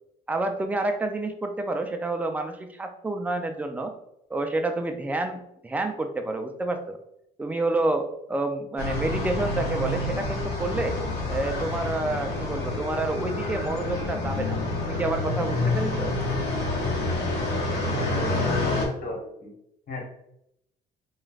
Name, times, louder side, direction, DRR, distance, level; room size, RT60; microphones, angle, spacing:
voice 1, 0.3-3.9 4.3-7.0 7.4-11.0 11.3-16.1, right 2 dB, 10° right, 5 dB, 0.3 m, -29 dB
sound 1, 8.8-18.8, left 2 dB, 85° left, 0.8 m, -28 dB
voice 2, 17.9-19.5 19.9-20.0, left 1 dB, 60° left, -2 dB, 1.3 m, -33 dB
3.1 x 2.3 x 2.4 m, 0.78 s
cardioid pair, 110°, 17 cm